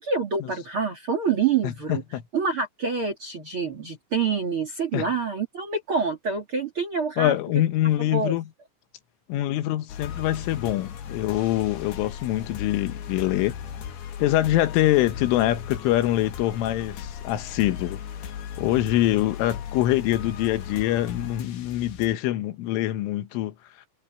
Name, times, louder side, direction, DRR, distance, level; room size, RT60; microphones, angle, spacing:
voice 1, 0.0-2.0 2.3-7.3 8.1-8.3, right 5 dB, 40° right, 2.2 m, -26 dB
voice 2, 1.6-2.2 4.9-5.1 7.2-8.5 9.3-13.6 14.2-18.0 18.6-23.5, left 14 dB, 85° left, 3.8 m, -24 dB
sound 1, 9.9-22.2, left 8 dB, 60° left, 3.5 m, -37 dB
omnidirectional pair, 5.6 m